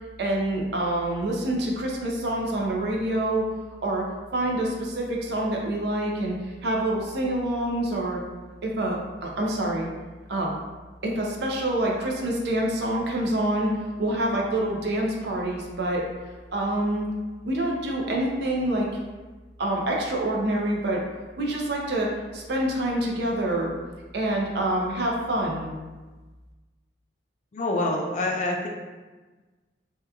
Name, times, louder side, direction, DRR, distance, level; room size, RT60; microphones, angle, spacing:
voice 1, 0.2-3.5 3.8-4.0 4.3-8.2 8.6-9.9 10.3-10.5 11.0-13.7 14.0-16.0 16.5-17.1 17.4-18.9 19.6-21.0 21.4-22.1 22.3-23.7 24.1-25.7, right 1 dB, 60° right, -1 dB, 0.5 m, -26 dB
voice 2, 27.5-28.7, left 2 dB, 40° left, 0 dB, 0.3 m, -26 dB
2.8 x 2.2 x 2.3 m, 1.3 s
head